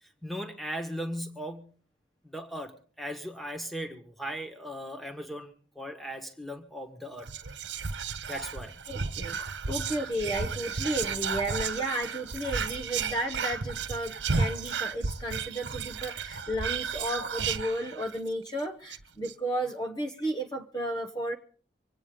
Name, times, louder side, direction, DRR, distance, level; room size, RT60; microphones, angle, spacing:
voice 1, 0.0-1.8 2.2-7.3 8.3-8.7, equal, ahead, 5 dB, 1.6 m, -38 dB
Whispering, 7.2-18.3 18.6-18.7 18.9-19.3, right 5 dB, 80° right, 1.0 m, -33 dB
voice 2, 8.9-21.3, right 1 dB, 20° left, 3 dB, 1.0 m, -33 dB
25.0 x 9.1 x 5.1 m, 0.43 s
head